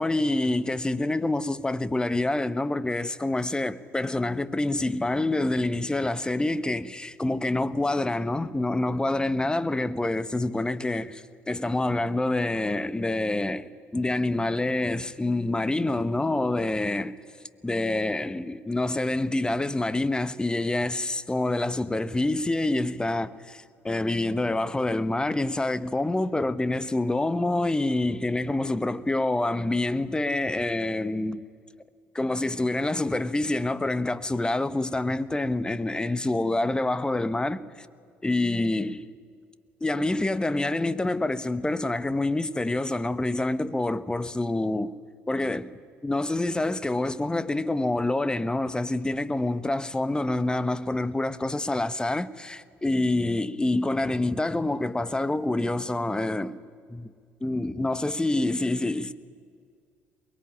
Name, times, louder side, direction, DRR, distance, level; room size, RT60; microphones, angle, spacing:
voice 1, 0.0-17.2 17.6-31.4 32.1-37.9 38.2-39.1 39.8-44.9 45.3-45.7 46.0-56.6 56.9-57.1 57.4-59.1, left 2 dB, 15° left, 1.2 m, -27 dB
23.0 x 21.5 x 10.0 m
hypercardioid pair, 55°, 6 cm